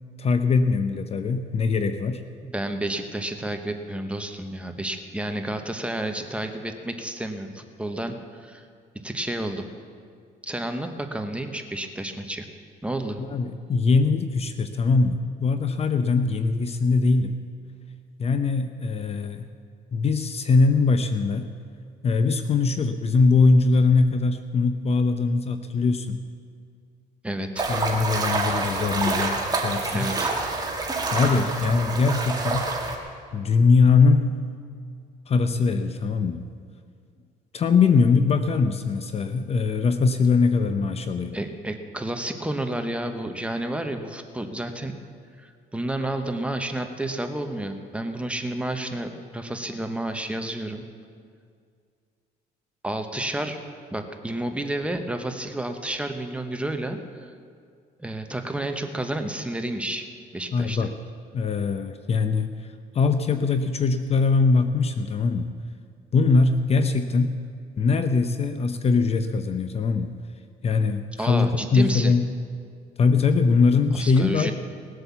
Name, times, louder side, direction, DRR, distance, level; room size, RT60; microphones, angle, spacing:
voice 1, 0.2-2.2 13.3-17.4 18.2-19.4 19.9-21.5 22.0-26.2 27.7-30.1 31.1-32.7 33.3-34.4 35.3-36.4 37.5-41.4 60.5-60.9 61.3-62.7 62.9-65.5 66.1-67.4 67.8-70.1 70.6-72.3 73.0-74.5, left 4 dB, 40° left, 9 dB, 0.7 m, -21 dB
voice 2, 2.4-8.6 9.0-9.7 10.4-12.5 12.8-13.2 27.2-27.6 29.9-30.3 41.3-44.9 45.4-50.8 52.8-53.6 53.9-57.3 58.0-60.0 60.3-60.9 71.2-72.1 74.0-74.5, right 1 dB, 5° right, 6 dB, 1.1 m, -30 dB
sound 1, 27.6-33.0, right 3 dB, 25° right, 2.0 m, -27 dB
19.0 x 8.0 x 7.1 m, 2.2 s
cardioid pair, 110°, 17 cm